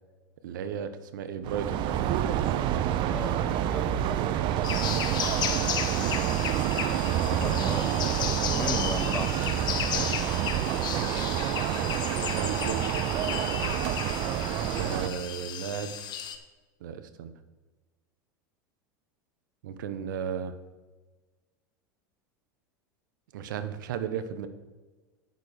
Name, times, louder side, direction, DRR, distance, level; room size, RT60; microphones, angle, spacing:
voice 1, 0.4-2.9 10.9-11.3 12.3-13.0 14.7-16.0 16.8-17.3 19.6-20.5 23.3-24.5, right 8 dB, 70° right, 11 dB, 0.9 m, -35 dB
sound 1, 1.4-15.1, right 11 dB, 50° right, 0.8 m, -28 dB
voice 2, 3.1-3.9 4.8-5.5 6.9-9.5, left 2 dB, 10° left, 9 dB, 1.0 m, -38 dB
sound 2, 4.6-16.4, left 8 dB, 45° left, 1.3 m, -34 dB
9.3 x 9.3 x 4.9 m, 1.2 s
hypercardioid pair, 90°, 11 cm